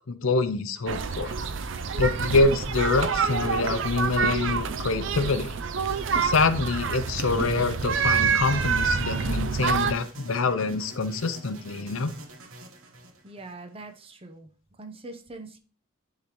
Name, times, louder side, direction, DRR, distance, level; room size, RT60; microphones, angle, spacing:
voice 1, 0.1-1.3 2.0-5.5 6.2-12.1, left 3 dB, 85° left, 11 dB, 0.7 m, -25 dB
sound 1, 0.9-9.9, right 5 dB, 65° right, 0.5 m, -27 dB
sound 2, 5.9-13.9, right 1 dB, 85° right, 1.3 m, -45 dB
voice 2, 13.2-14.5 14.8-15.6, right 2 dB, 30° right, 7 dB, 0.8 m, -42 dB
10.0 x 3.9 x 3.0 m, 0.39 s
head